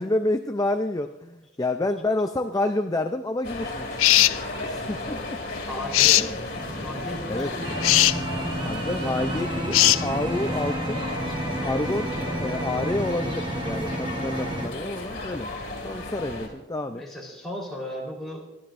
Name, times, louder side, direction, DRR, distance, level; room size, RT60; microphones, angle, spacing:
voice 1, 0.0-4.0 4.6-5.4 6.2-6.3 7.3-7.5 8.6-11.1 11.6-17.0, left 2 dB, 20° left, 7 dB, 0.5 m, -29 dB
sound 1, 3.4-16.5, left 2 dB, 50° left, 2.7 m, -34 dB
sound 2, 4.0-4.4 5.9-6.3 7.8-8.2 9.7-10.0, left 16 dB, 75° left, 0.4 m, -17 dB
voice 2, 5.7-6.3 6.8-8.0 16.9-18.4, left 1 dB, ahead, -4 dB, 3.9 m, -36 dB
sound 3, 6.5-14.7, right 1 dB, 25° right, 1.1 m, -31 dB
26.0 x 12.0 x 2.6 m, 0.93 s
head